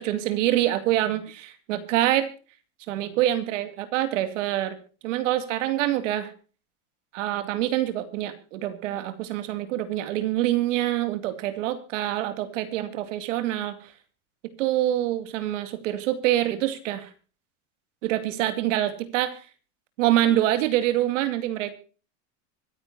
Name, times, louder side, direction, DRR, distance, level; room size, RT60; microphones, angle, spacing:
voice 1, 0.0-2.3 2.9-4.8 5.0-6.3 7.1-13.8 14.6-17.1 18.0-19.4 20.0-21.7, right 13 dB, 85° right, 10 dB, 2.6 m, -25 dB
25.0 x 9.8 x 2.8 m, 0.38 s
supercardioid pair, 160°, 36 cm